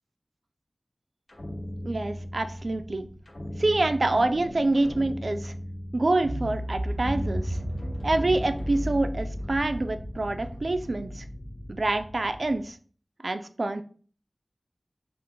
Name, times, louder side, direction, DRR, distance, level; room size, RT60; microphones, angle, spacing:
sound 1, 1.3-12.6, equal, 70° left, 0.9 m, -35 dB
voice 1, 1.8-3.1 3.6-5.5 5.9-7.6 8.0-11.2 11.7-12.8 13.2-13.8, right 2 dB, 65° right, 9 dB, 0.3 m, -26 dB
3.8 x 2.5 x 3.6 m, 0.42 s
wide cardioid pair, 45°, 0 cm